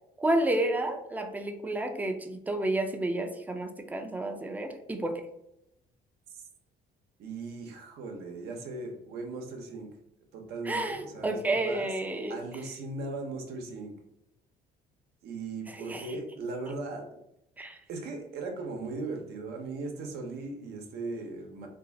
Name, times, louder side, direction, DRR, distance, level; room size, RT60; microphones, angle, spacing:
voice 1, 0.2-5.2 10.7-12.4 15.8-16.1 17.6-17.8, right 1 dB, 10° right, 5 dB, 0.4 m, -30 dB
voice 2, 7.2-9.9 10.3-11.9 12.3-13.9 15.2-17.1 17.9-21.7, right 3 dB, 75° right, 3 dB, 0.8 m, -38 dB
2.7 x 2.4 x 4.0 m, 0.82 s
cardioid pair, 110°, 17 cm